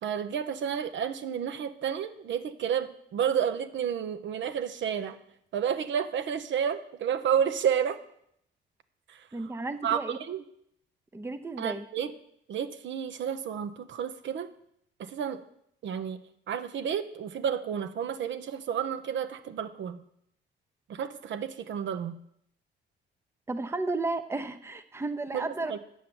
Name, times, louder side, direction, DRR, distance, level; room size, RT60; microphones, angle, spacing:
voice 1, 0.0-5.2 5.5-8.0 9.8-10.4 11.6-12.1 12.5-14.5 15.0-15.4 15.8-16.2 16.5-20.0 20.9-22.2 25.3-25.8, right 8 dB, 70° right, 9 dB, 0.8 m, -31 dB
voice 2, 9.3-10.2 11.1-11.9 23.5-25.8, right 2 dB, 15° right, 10 dB, 0.7 m, -33 dB
8.3 x 5.7 x 7.8 m, 0.71 s
cardioid pair, 90°, 20 cm